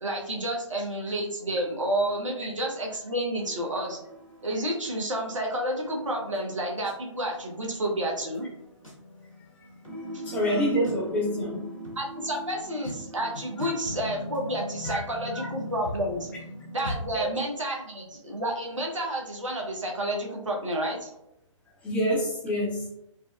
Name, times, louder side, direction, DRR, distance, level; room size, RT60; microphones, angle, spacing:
voice 1, 0.0-4.0 4.4-8.5 10.1-10.2 12.0-16.3 16.7-21.1, right 1 dB, 75° right, 0 dB, 0.9 m, -30 dB
sound 1, 3.3-17.3, equal, 90° left, 1.4 m, -40 dB
voice 2, 9.9-11.7 13.6-13.7 14.9-15.0 15.3-15.5 17.1-17.3 21.8-22.8, equal, 10° left, -5 dB, 0.8 m, -27 dB
4.0 x 2.3 x 2.3 m, 0.78 s
figure-of-eight pair, 130°, 16 cm